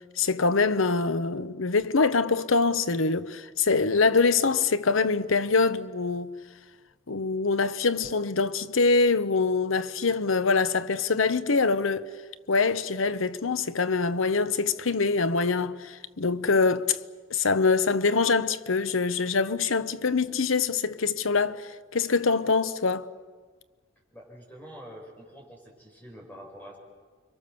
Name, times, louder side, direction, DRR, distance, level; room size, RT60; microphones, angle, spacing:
voice 1, 0.2-6.3 7.1-12.1 12.5-17.0 17.3-23.1, left 4 dB, 85° left, 0.9 m, -24 dB
voice 2, 24.1-26.8, equal, 10° left, 6.6 m, -46 dB
30.0 x 24.5 x 7.0 m
head